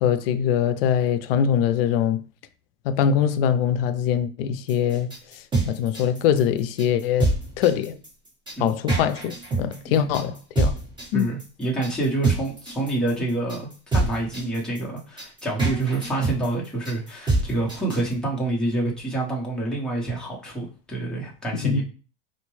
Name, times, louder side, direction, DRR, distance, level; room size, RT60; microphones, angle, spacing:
voice 1, 0.0-2.2 2.9-5.1 5.6-8.0 8.6-10.7 11.1-11.3 21.6-21.8, left 8 dB, 75° left, 0.5 m, -22 dB
sound 1, 4.7-18.1, right 2 dB, 15° right, 1.3 m, -26 dB
voice 2, 11.1-21.8, right 2 dB, ahead, 0.8 m, -27 dB
4.1 x 2.1 x 3.1 m
supercardioid pair, 145°, 30 cm